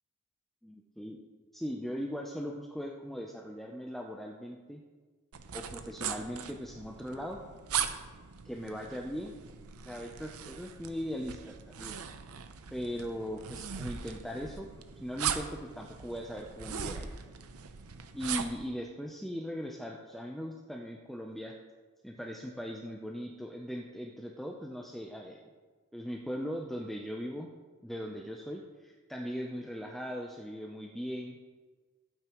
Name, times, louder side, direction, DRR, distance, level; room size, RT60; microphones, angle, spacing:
voice 1, 0.6-1.2 1.5-4.8 5.5-7.4 8.4-9.3 9.8-12.0 12.7-14.7 15.0-17.1 18.1-21.6 22.0-25.4 25.9-27.5 27.8-31.4, equal, ahead, 0 dB, 0.6 m, -39 dB
sound 1, 5.3-18.7, right 7 dB, 90° right, 0.7 m, -40 dB
15.0 x 9.2 x 3.1 m, 1.4 s
head